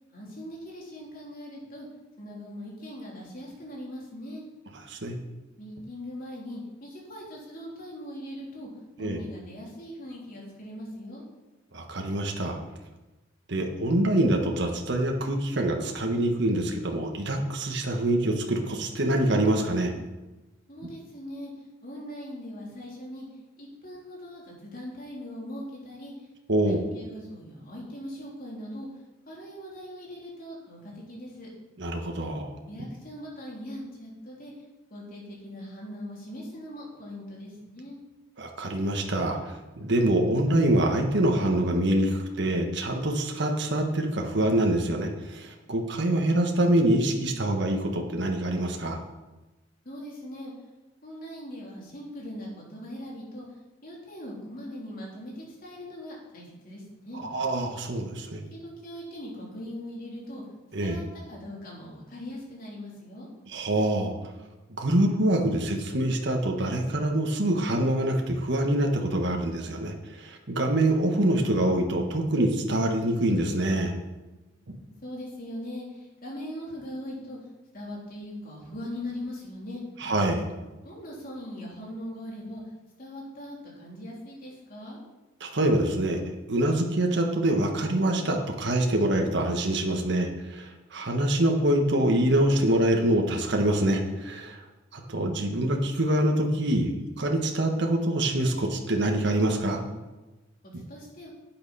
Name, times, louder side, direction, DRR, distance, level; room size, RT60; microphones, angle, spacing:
voice 1, 0.1-1.9 2.2-4.4 5.6-8.7 9.0-11.2 20.7-23.3 23.6-26.3 26.7-28.9 29.3-31.5 32.7-34.5 34.9-38.0 49.9-50.5 51.0-53.5 53.8-57.2 58.5-60.4 60.8-63.3 74.5-77.4 77.7-79.8 80.8-82.6 83.0-85.0 100.7-101.3, left 1 dB, 50° left, -4 dB, 3.5 m, -40 dB
voice 2, 11.7-12.6 13.5-19.9 26.5-26.8 31.8-32.5 38.4-49.0 57.2-58.4 60.7-61.0 63.5-64.1 64.8-73.9 74.7-74.8 80.0-80.4 85.4-86.2 86.5-94.6 94.9-99.8, right 1 dB, 65° right, 2 dB, 1.5 m, -25 dB
11.5 x 9.0 x 4.2 m, 1.1 s
head